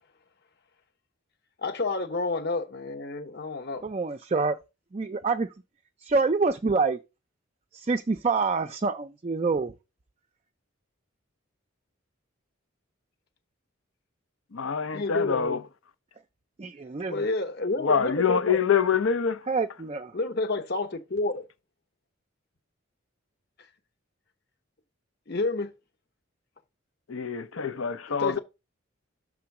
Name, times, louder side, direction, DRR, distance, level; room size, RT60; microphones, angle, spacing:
voice 1, 1.6-3.9 14.9-15.6 17.1-18.6 20.1-21.4 25.3-25.7 28.2-28.4, left 2 dB, 50° left, 0.9 m, -29 dB
voice 2, 3.8-4.6 4.9-5.5 6.0-7.0 7.7-9.7 16.6-17.3 19.5-20.1, right 4 dB, 30° right, 0.4 m, -26 dB
voice 3, 14.5-15.6 17.8-19.5 27.1-28.4, left 7 dB, 80° left, 0.7 m, -25 dB
6.2 x 3.7 x 5.8 m
head